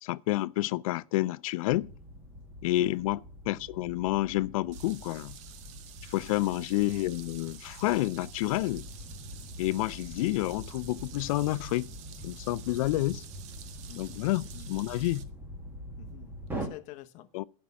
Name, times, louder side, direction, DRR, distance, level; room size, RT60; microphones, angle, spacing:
voice 1, 0.0-1.9 2.6-5.4 6.1-8.9 9.6-11.9 12.2-13.2 14.0-15.2 17.3-17.5, left 17 dB, 85° left, 0.5 m, -29 dB
sound 1, 1.7-16.7, equal, 10° right, 1.6 m, -44 dB
voice 2, 2.8-3.1 6.3-6.5 13.9-14.7 16.0-17.5, left 15 dB, 45° left, 0.9 m, -49 dB
sound 2, 4.7-15.2, right 10 dB, 40° right, 0.9 m, -50 dB
8.6 x 5.6 x 8.0 m
supercardioid pair, 155°, 17 cm